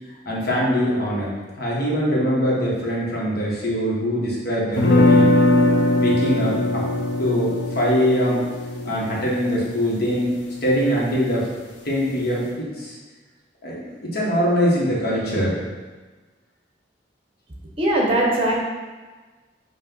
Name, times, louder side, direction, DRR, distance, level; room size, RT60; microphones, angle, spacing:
voice 1, 0.2-1.3 1.6-5.4 6.0-6.8 7.2-8.5 8.8-11.5 11.8-13.0 13.6-15.6, equal, 60° left, -5 dB, 1.6 m, -22 dB
sound 1, 4.8-10.7, left 2 dB, 80° left, 0.9 m, -20 dB
voice 2, 17.8-18.6, right 1 dB, 30° right, -1 dB, 1.2 m, -20 dB
5.9 x 2.9 x 5.5 m, 1.3 s
head